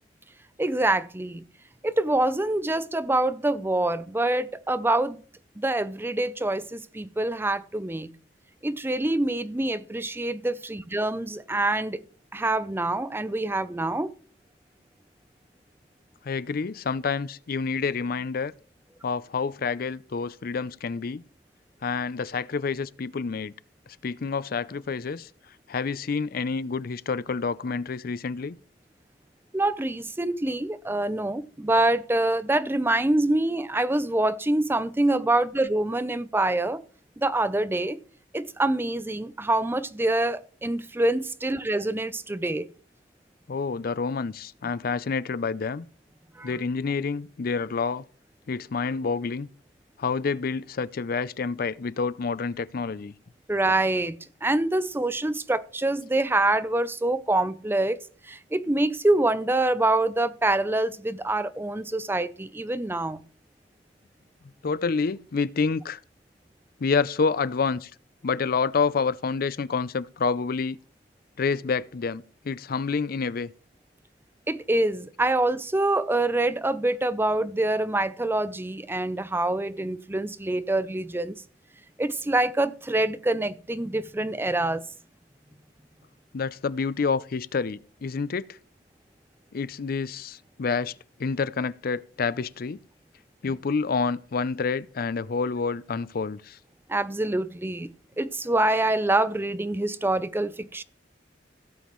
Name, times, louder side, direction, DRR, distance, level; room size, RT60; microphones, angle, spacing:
voice 1, 0.6-1.4 1.8-5.2 5.6-8.1 8.6-12.0 12.3-14.1 29.5-36.8 37.2-38.0 38.3-42.7 46.4-46.6 53.5-58.0 58.3-63.2 74.5-81.4 82.0-84.8 96.9-97.9 98.2-100.8, right 2 dB, 10° right, 0.5 m, -25 dB
voice 2, 16.2-18.5 19.0-21.2 21.8-23.5 24.0-25.3 25.7-28.6 43.5-45.9 46.4-48.0 48.5-49.5 50.0-53.1 64.6-66.0 66.8-67.9 68.2-70.8 71.4-73.5 86.3-88.5 89.5-90.9 91.2-92.8 93.4-96.6, left 5 dB, 55° left, 0.5 m, -28 dB
16.5 x 7.2 x 3.1 m
head